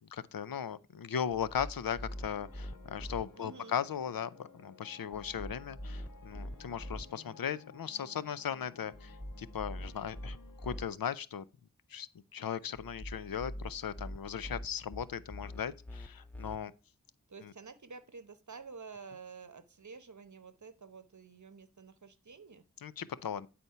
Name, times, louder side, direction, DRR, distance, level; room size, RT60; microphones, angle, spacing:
voice 1, 0.0-10.4 10.6-11.5 11.9-16.7 17.4-17.5 22.8-23.5, left 8 dB, 90° left, 0.5 m, -38 dB
sound 1, 1.3-3.2 5.1-7.0 8.9-10.9 12.7-16.6, equal, 5° left, 0.4 m, -44 dB
sound 2, 2.1-10.9, left 4 dB, 70° left, 1.1 m, -57 dB
voice 2, 3.4-3.8 17.3-22.6, right 5 dB, 60° right, 0.9 m, -50 dB
9.2 x 4.3 x 5.5 m
wide cardioid pair, 50°, 34 cm